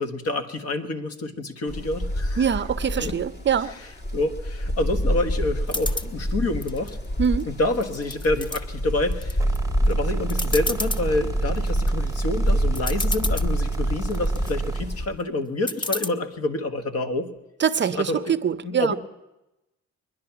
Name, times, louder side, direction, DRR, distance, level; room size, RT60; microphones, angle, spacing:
voice 1, 0.0-2.5 3.0-3.2 3.8-7.0 7.5-9.4 9.8-17.3 17.9-18.3 18.6-19.0, left 2 dB, 55° left, 1.5 m, -28 dB
sound 1, 1.7-15.1, equal, 35° left, 2.1 m, -28 dB
voice 2, 2.4-3.7 7.2-7.5 17.6-18.9, right 7 dB, 40° right, 0.6 m, -24 dB
sound 2, 5.7-6.1 6.6-7.4 7.8-8.6 9.1-9.6 9.9-10.0 10.3-11.0 11.6-11.9 12.5-12.6 12.7-13.5 14.0-14.5 15.7-16.1, left 2 dB, 15° left, 0.6 m, -30 dB
sound 3, 9.4-14.9, right 3 dB, 10° right, 0.9 m, -28 dB
22.5 x 10.5 x 5.9 m
cardioid pair, 90°, 30 cm